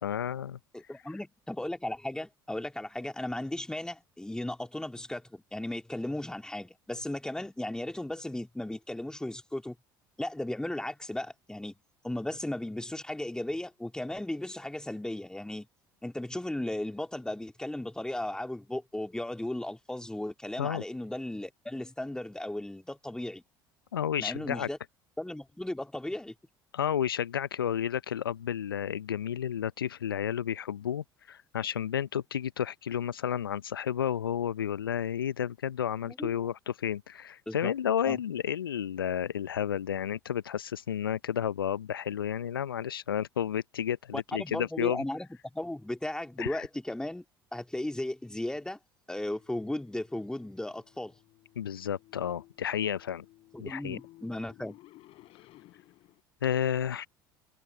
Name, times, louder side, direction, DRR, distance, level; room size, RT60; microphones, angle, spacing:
voice 1, 0.0-0.6 20.6-20.8 23.9-24.7 26.7-45.0 46.4-46.7 51.6-53.2 53.6-54.0 56.4-57.1, left 9 dB, 80° left, 0.7 m, -31 dB
voice 2, 0.7-9.7 10.2-11.7 12.0-15.7 16.0-23.4 24.2-24.8 25.2-26.3 36.0-36.3 37.5-37.7 38.1-38.2 44.1-47.2 47.5-48.8 49.1-51.1 53.5-54.8, left 1 dB, 5° left, 3.0 m, -36 dB
sound 1, 49.4-56.2, left 17 dB, 55° left, 6.0 m, -58 dB
figure-of-eight pair, 60°, 12 cm